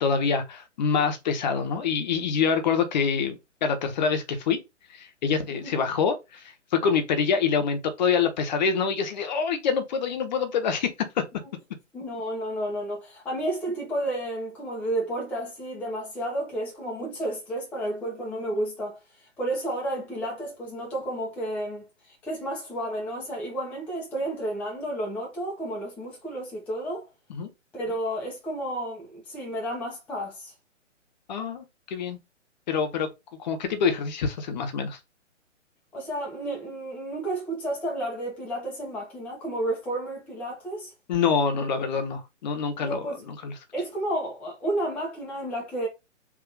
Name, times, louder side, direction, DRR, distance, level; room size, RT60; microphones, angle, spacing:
voice 1, 0.0-4.6 4.9-11.2 27.3-27.5 31.3-32.2 32.7-33.1 33.4-35.0 41.1-43.5, left 6 dB, 35° left, 0.9 m, -26 dB
voice 2, 11.9-19.0 19.4-27.0 27.7-30.5 35.9-40.9 42.8-43.2 43.7-45.9, right 1 dB, 5° left, 0.6 m, -31 dB
3.5 x 2.6 x 3.8 m
figure-of-eight pair, 135°, 37 cm